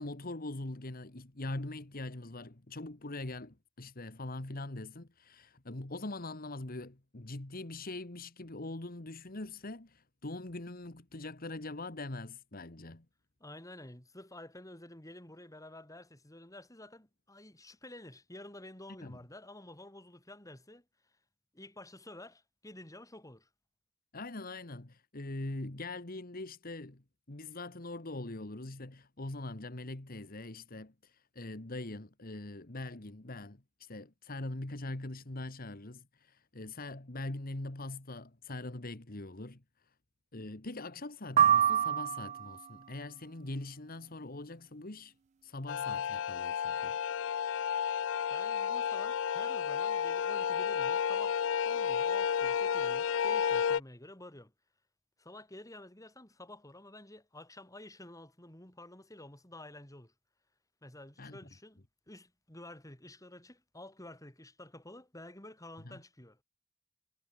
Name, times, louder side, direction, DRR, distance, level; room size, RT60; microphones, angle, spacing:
voice 1, 0.0-13.0 19.0-19.2 24.1-39.6 40.3-45.1 45.4-46.9 61.2-61.4 65.8-66.0, left 2 dB, 50° left, 1.7 m, -42 dB
voice 2, 13.4-20.8 21.5-23.5 48.3-51.4 51.6-54.5 55.2-60.1 60.8-66.4, left 1 dB, 15° left, 5.1 m, -51 dB
sound 1, 41.4-42.6, right 9 dB, 35° right, 0.3 m, -26 dB
sound 2, 45.7-53.8, left 7 dB, 80° left, 0.4 m, -31 dB
head